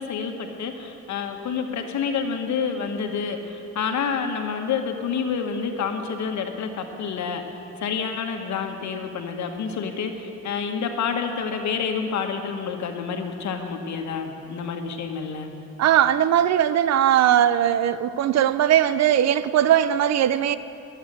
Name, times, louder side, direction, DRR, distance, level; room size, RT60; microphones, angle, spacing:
voice 1, 0.0-7.4 7.8-15.5, left 6 dB, 65° left, 5 dB, 1.3 m, -28 dB
voice 2, 15.8-20.6, right 10 dB, 60° right, 15 dB, 0.5 m, -19 dB
11.5 x 8.0 x 7.6 m, 2.8 s
cardioid pair, 90°, 30 cm